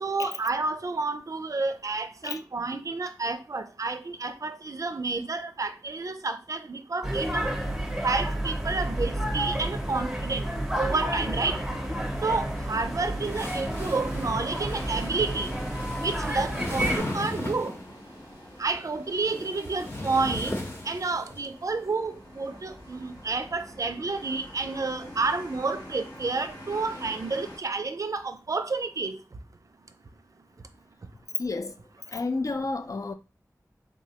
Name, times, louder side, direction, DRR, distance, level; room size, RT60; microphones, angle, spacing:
voice 1, 0.0-7.5 8.0-10.5 10.8-11.6 12.2-15.5 16.0-17.7 18.6-20.6 20.8-29.2, right 3 dB, 55° right, 0.4 m, -30 dB
sound 1, 7.0-17.0, right 1 dB, 5° right, 0.7 m, -31 dB
sound 2, 9.1-27.6, equal, 90° left, 1.1 m, -45 dB
sound 3, 13.2-17.9 18.9-21.4, left 1 dB, 40° left, 0.9 m, -36 dB
voice 2, 31.4-31.8 32.1-33.1, left 3 dB, 55° left, 0.4 m, -31 dB
3.5 x 2.0 x 2.7 m
wide cardioid pair, 45°, 7 cm